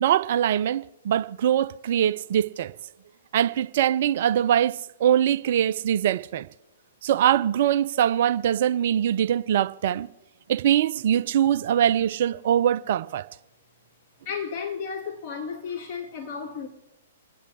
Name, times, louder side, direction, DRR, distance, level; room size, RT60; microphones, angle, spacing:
voice 1, 0.0-2.7 3.3-6.5 7.0-10.1 10.5-13.2, right 10 dB, 45° right, 0.4 m, -23 dB
voice 2, 14.2-16.7, left 6 dB, 40° left, 3.1 m, -33 dB
28.0 x 9.9 x 3.3 m
figure-of-eight pair, 115°, 0 cm